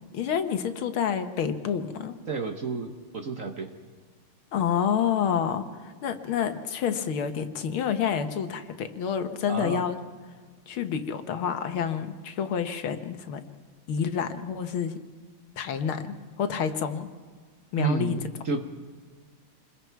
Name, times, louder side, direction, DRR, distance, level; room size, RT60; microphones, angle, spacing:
voice 1, 0.1-2.2 4.5-10.0 10.7-13.4 13.9-15.0 15.6-17.1 17.7-18.2, left 7 dB, 75° left, 8 dB, 2.0 m, -28 dB
voice 2, 2.3-3.7 9.5-9.8 17.8-18.6, right 4 dB, 45° right, 5 dB, 1.3 m, -30 dB
27.5 x 21.5 x 4.6 m, 1.5 s
omnidirectional pair, 2.4 m